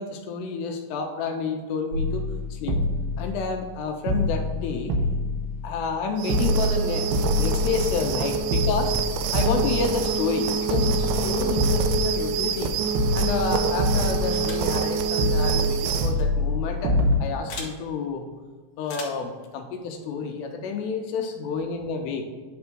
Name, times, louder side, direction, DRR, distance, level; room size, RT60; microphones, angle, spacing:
voice 1, 0.0-2.8 3.2-5.0 5.6-9.0 9.3-12.8 13.2-18.3 18.8-22.2, left 5 dB, 80° left, 3 dB, 2.6 m, -30 dB
sound 1, 1.9-3.8 4.1-6.0 6.3-8.1 8.5-10.4 10.7-12.6 12.9-14.9 15.2-17.1, left 1 dB, 75° right, 2.3 m, -26 dB
sound 2, 6.2-16.1, right 5 dB, 90° right, 2.1 m, -26 dB
sound 3, 14.3-14.7 16.0-16.2 17.5-17.8 18.8-19.3, left 4 dB, 60° left, 2.0 m, -38 dB
9.6 x 3.5 x 6.0 m, 1.4 s
omnidirectional pair, 5.1 m